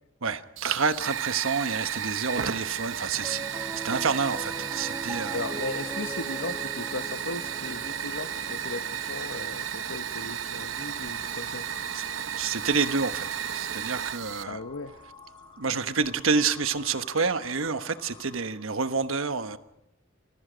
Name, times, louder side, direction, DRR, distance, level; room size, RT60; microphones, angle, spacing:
voice 1, 0.2-5.4 11.9-14.6 15.6-19.6, right 5 dB, 85° right, 10 dB, 1.2 m, -28 dB
Fire, 0.6-14.4, right 8 dB, 70° right, 0.9 m, -33 dB
Piano, 3.1-13.6, right 1 dB, 10° right, 0.8 m, -42 dB
voice 2, 5.3-11.7 14.5-14.9, left 3 dB, 80° left, 10 dB, 1.0 m, -37 dB
sound 1, 10.7-18.7, left 2 dB, 25° left, 4.8 m, -51 dB
27.0 x 22.0 x 5.1 m, 0.85 s
head